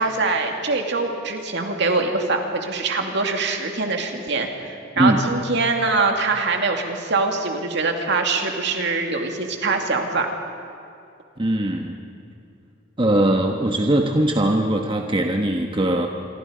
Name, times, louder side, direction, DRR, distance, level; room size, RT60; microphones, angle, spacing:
voice 1, 0.0-10.3, right 3 dB, 60° right, 3 dB, 2.4 m, -23 dB
voice 2, 11.4-12.0 13.0-16.1, right 1 dB, 25° right, 3 dB, 1.2 m, -20 dB
27.0 x 23.5 x 5.1 m, 2.5 s
head